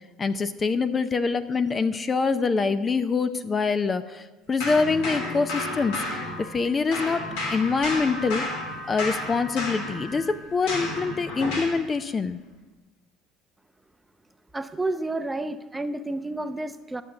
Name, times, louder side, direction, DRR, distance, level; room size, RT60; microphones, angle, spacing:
voice 1, 0.2-7.2 7.5-8.5 8.9-12.4, left 4 dB, 30° left, 11 dB, 0.6 m, -25 dB
sound 1, 4.6-6.7 6.9-11.8, left 2 dB, 85° left, 3.0 m, -32 dB
voice 2, 14.5-17.0, right 2 dB, 10° right, 10 dB, 0.6 m, -30 dB
12.0 x 6.4 x 6.8 m, 1.2 s
supercardioid pair, 100°, 0 cm